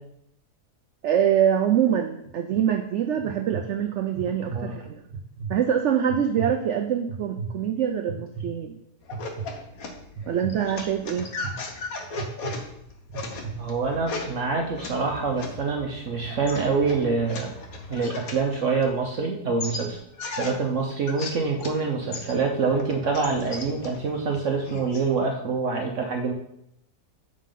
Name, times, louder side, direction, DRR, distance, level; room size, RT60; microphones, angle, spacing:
voice 1, 1.0-5.0 5.5-8.8 10.3-11.3, right 9 dB, 75° right, 6 dB, 0.6 m, -24 dB
sound 1, 2.2-2.6 3.2-3.6 4.1-4.6 5.1-5.5 6.1-6.5 7.1-7.5 8.1-8.4 9.1-9.5 10.2-10.5 11.2-11.5 12.1-12.5 13.1-13.5, right 5 dB, 90° right, 1.6 m, -34 dB
sound 2, 9.0-19.2 19.6-21.8 22.1-25.1, left 3 dB, 60° left, 1.4 m, -37 dB
voice 2, 13.6-17.5 17.9-20.0 20.3-26.3, right 4 dB, 55° right, 1 dB, 1.0 m, -26 dB
7.4 x 6.8 x 3.8 m, 0.77 s
omnidirectional pair, 1.8 m